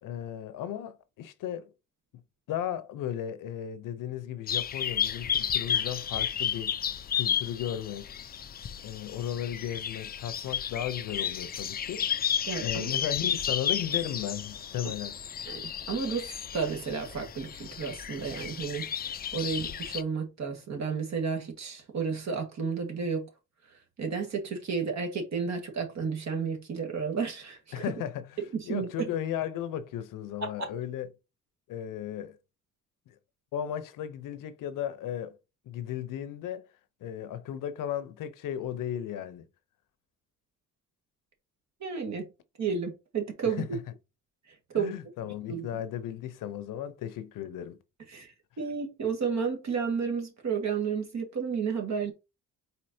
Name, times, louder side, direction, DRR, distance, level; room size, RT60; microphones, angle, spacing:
voice 1, 0.0-1.7 2.5-6.8 7.1-8.3 8.8-12.1 12.6-15.2 27.7-28.4 28.7-31.1 31.7-32.4 33.1-33.2 33.5-35.4 35.7-36.7 37.0-39.5 43.4-43.8 44.7-47.8, left 10 dB, 80° left, 0.7 m, -35 dB
sound 1, 4.5-20.0, left 9 dB, 30° left, 0.4 m, -32 dB
voice 2, 12.5-12.9 15.5-19.1 19.3-23.3 24.0-27.8 28.5-29.1 30.4-30.7 41.8-42.3 42.6-43.6 44.7-44.9 45.5-45.7 48.1-52.1, right 5 dB, 55° right, 1.6 m, -32 dB
4.3 x 4.2 x 2.7 m
cardioid pair, 85°, 32 cm